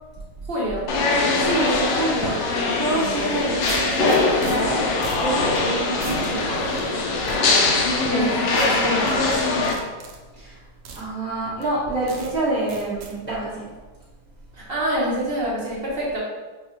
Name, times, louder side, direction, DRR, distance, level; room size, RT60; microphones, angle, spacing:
voice 1, 0.5-0.8 8.0-9.4 14.5-16.2, equal, 50° right, -6 dB, 0.8 m, -26 dB
sound 1, 0.9-9.7, left 3 dB, 80° left, 1.2 m, -22 dB
voice 2, 1.3-2.3 2.6-6.4 10.4-10.6 11.0-13.6, right 2 dB, 10° left, -11 dB, 0.6 m, -27 dB
sound 2, 2.9-3.0 3.6-4.6 5.0-5.3 5.6-5.7 6.0-6.3 6.8-7.4 8.5-8.7 9.1-10.2 10.9-11.0 11.6-11.7 12.1-12.3 12.7-13.1, right 4 dB, 85° right, 1.3 m, -37 dB
4.8 x 2.3 x 2.9 m, 1.3 s
omnidirectional pair, 1.9 m